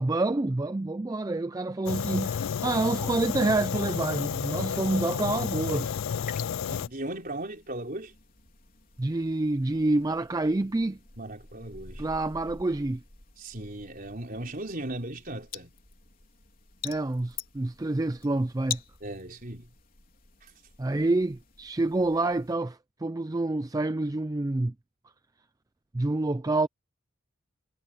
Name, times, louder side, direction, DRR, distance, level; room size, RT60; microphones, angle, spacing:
voice 1, 0.0-6.0 9.0-11.0 12.0-13.0 16.8-18.8 20.8-24.7 25.9-26.7, right 2 dB, 15° right, 0.4 m, -27 dB
Fire, 1.9-6.9, left 7 dB, 75° left, 0.4 m, -31 dB
sound 1, 6.0-22.5, left 7 dB, 40° left, 4.0 m, -46 dB
voice 2, 6.6-8.1 11.2-12.0 13.4-15.7 19.0-19.7 20.4-20.5, right 1 dB, 40° right, 4.0 m, -37 dB
head